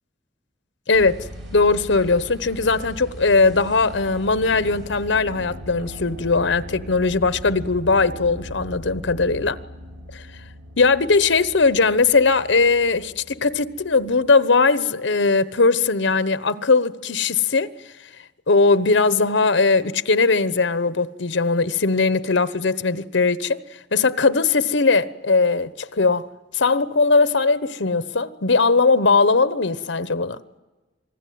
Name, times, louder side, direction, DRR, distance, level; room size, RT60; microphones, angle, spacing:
voice 1, 0.9-1.3 1.5-9.6 10.1-10.2 10.8-17.7 18.5-23.6 23.9-26.3 26.5-30.4, left 4 dB, 75° left, 1.0 m, -19 dB
sound 1, 0.9-14.3, equal, 75° right, 6.0 m, -39 dB
27.5 x 20.0 x 9.4 m
head